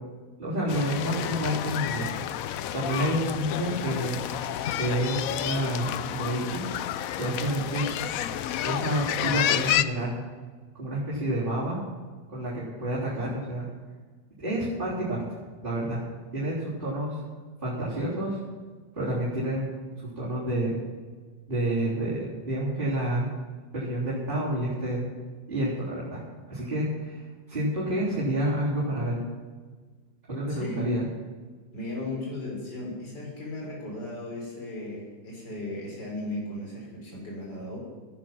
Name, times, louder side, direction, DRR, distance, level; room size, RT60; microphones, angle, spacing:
voice 1, 0.4-2.1 2.7-4.1 4.8-6.6 7.1-7.9 8.6-10.1 10.8-11.8 12.3-13.6 14.4-15.4 15.6-16.0 16.3-17.2 17.6-18.4 18.9-19.7 20.0-20.7 21.5-23.3 23.7-25.0 25.5-26.2 26.5-27.2 27.5-29.2 30.3-31.1, right 1 dB, 25° right, -10 dB, 3.9 m, -29 dB
sound 1, 0.7-9.8, left 11 dB, 90° left, 0.7 m, -30 dB
voice 2, 30.5-30.9 31.7-37.8, left 1 dB, 65° left, -3 dB, 4.7 m, -36 dB
15.0 x 10.5 x 6.0 m, 1.4 s
omnidirectional pair, 2.0 m